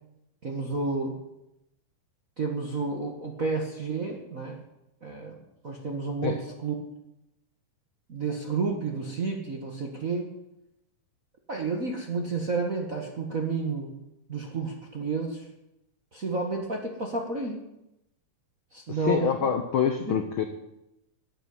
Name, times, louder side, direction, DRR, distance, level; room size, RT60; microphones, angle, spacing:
voice 1, 0.4-1.2 2.4-4.6 5.0-6.7 8.1-10.3 11.5-13.9 14.3-15.5 16.1-17.6 18.7-19.5 20.1-20.2, right 4 dB, 45° right, 2 dB, 1.1 m, -31 dB
voice 2, 18.9-20.4, left 8 dB, 85° left, 7 dB, 1.1 m, -26 dB
12.5 x 9.4 x 9.5 m, 0.88 s
omnidirectional pair, 3.8 m